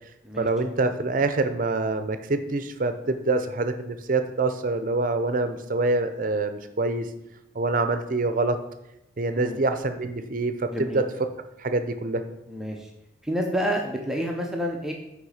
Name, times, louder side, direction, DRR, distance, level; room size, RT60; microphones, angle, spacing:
voice 1, 0.4-7.1 7.5-8.6 9.2-11.0 11.6-12.2, right 3 dB, 45° right, 9 dB, 0.6 m, -25 dB
voice 2, 10.7-11.0 12.5-12.9 13.2-14.9, equal, 5° right, 0 dB, 0.6 m, -29 dB
6.8 x 5.0 x 4.9 m, 0.87 s
head